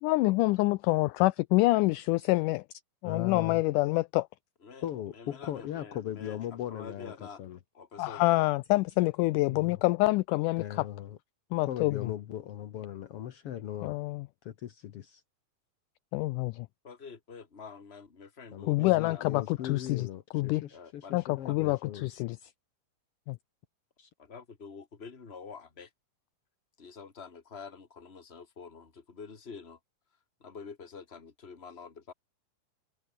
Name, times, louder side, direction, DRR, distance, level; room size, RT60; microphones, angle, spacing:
voice 1, 0.0-2.6 3.0-4.3 8.0-10.9 11.5-12.1 13.8-14.3 16.1-16.7 18.7-20.1 20.3-20.6 21.1-22.5 23.3-23.4, left 20 dB, 85° left, 1.8 m, -27 dB
voice 2, 3.0-3.6 4.8-7.6 9.5-9.8 10.6-11.2 11.6-14.0 14.4-15.2 18.5-22.1 24.0-24.1, left 11 dB, 65° left, 1.5 m, -39 dB
voice 3, 5.1-6.4 6.7-7.4 7.7-8.4 16.8-19.2 20.7-21.1 21.5-21.6 24.2-25.9 26.8-29.8 30.4-32.1, left 5 dB, 20° left, 2.1 m, -47 dB
omnidirectional pair, 4.1 m